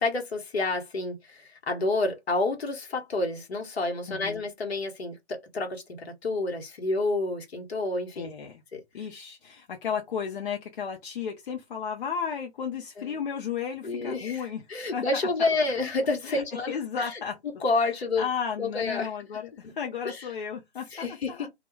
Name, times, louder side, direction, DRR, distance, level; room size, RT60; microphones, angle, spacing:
voice 1, 0.0-8.3 8.7-8.8 13.0-13.2 13.8-17.2 17.6-18.3 18.6-19.1 19.6-19.7 20.0-20.3 20.9-21.5, left 2 dB, 70° left, 1.0 m, -29 dB
voice 2, 4.1-4.4 8.2-8.6 8.9-14.6 14.9-15.0 16.2-17.3 18.2-21.5, left 7 dB, 50° left, 0.6 m, -34 dB
2.2 x 2.1 x 3.0 m
figure-of-eight pair, 140°, 33 cm